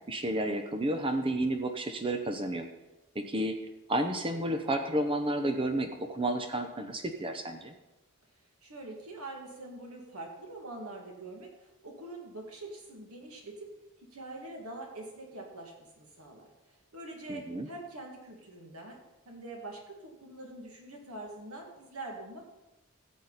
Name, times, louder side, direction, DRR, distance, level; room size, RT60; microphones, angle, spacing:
voice 1, 0.1-2.7 3.1-3.6 3.9-7.7 17.3-17.7, right 1 dB, 25° right, 7 dB, 0.7 m, -31 dB
voice 2, 8.6-13.7 14.0-22.4, right 2 dB, 90° right, 1 dB, 2.2 m, -44 dB
14.5 x 8.3 x 4.1 m, 1.0 s
head